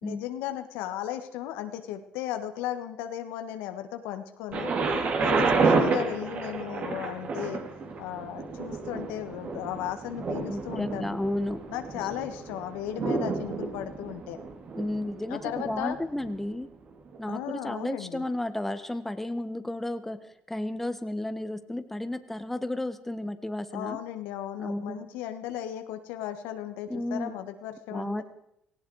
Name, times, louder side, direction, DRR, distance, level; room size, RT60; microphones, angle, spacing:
voice 1, 0.0-4.7 5.2-7.6 8.0-11.2 11.7-14.4 15.3-16.0 17.3-18.2 23.7-28.2, left 11 dB, 85° left, 8 dB, 1.5 m, -36 dB
Thunder, 4.5-16.4 17.1-17.2, right 4 dB, 50° right, 2.9 m, -30 dB
voice 2, 5.2-5.6 10.5-11.6 14.7-16.7 17.2-24.0 24.6-25.1 26.9-27.3 27.9-28.2, left 1 dB, 5° left, 10 dB, 1.4 m, -33 dB
18.0 x 16.5 x 4.8 m, 0.78 s
supercardioid pair, 85°, 3 cm